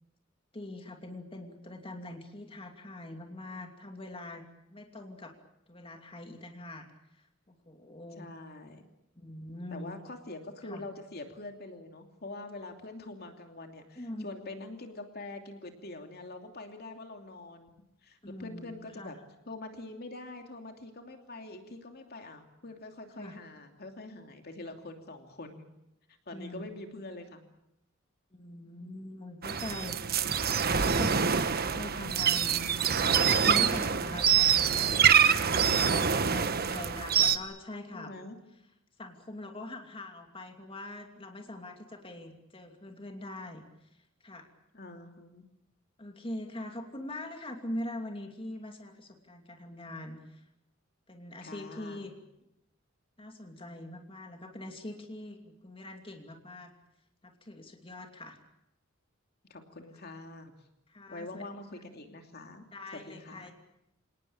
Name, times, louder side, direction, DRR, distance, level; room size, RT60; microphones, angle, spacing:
voice 1, 0.5-4.4 4.7-5.3 5.7-6.9 7.1-8.3 9.2-9.9 10.6-10.8 14.0-14.3 18.2-18.7 19.0-19.2 23.2-23.4 26.3-26.7 28.3-30.0 30.8-32.7 33.0-35.8 36.2-38.1 39.0-43.6 44.2-44.5 46.0-50.4 51.1-52.1 53.2-56.7 57.2-58.4 60.9-61.5 62.7-63.5, left 1 dB, 25° left, 4 dB, 2.8 m, -43 dB
voice 2, 8.2-8.8 9.7-17.7 18.0-19.2 19.5-25.7 26.3-27.5 37.9-38.4 44.7-45.4 51.4-52.1 59.5-60.5 61.1-62.6 62.9-63.5, left 2 dB, 50° left, 4 dB, 2.9 m, -44 dB
sound 1, 29.4-37.4, right 7 dB, 50° right, 1.2 m, -25 dB
27.5 x 19.0 x 8.7 m, 0.85 s
head